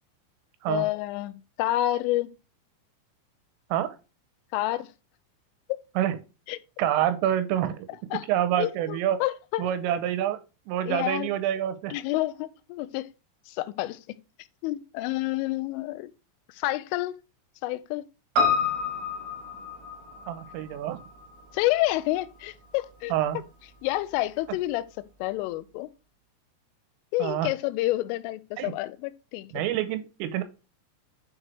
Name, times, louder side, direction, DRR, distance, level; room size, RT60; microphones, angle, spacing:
voice 1, 0.7-2.3 4.5-4.9 5.7-5.8 6.5-6.6 8.1-8.2 8.6-9.6 10.9-11.3 11.9-13.1 13.5-14.2 14.6-16.1 16.5-17.2 17.6-18.0 21.5-23.1 23.8-25.9 27.1-29.6, left 17 dB, 85° left, 3.0 m, -29 dB
voice 2, 6.8-7.8 8.3-9.2 9.6-10.4 10.7-11.9 20.3-21.0 23.1-23.4 27.2-27.5 28.6-28.7 29.5-30.4, right 11 dB, 90° right, 3.4 m, -27 dB
Piano, 18.4-22.9 23.2-23.3, left 4 dB, 60° right, 5.8 m, -30 dB
9.9 x 4.7 x 3.3 m
omnidirectional pair, 5.8 m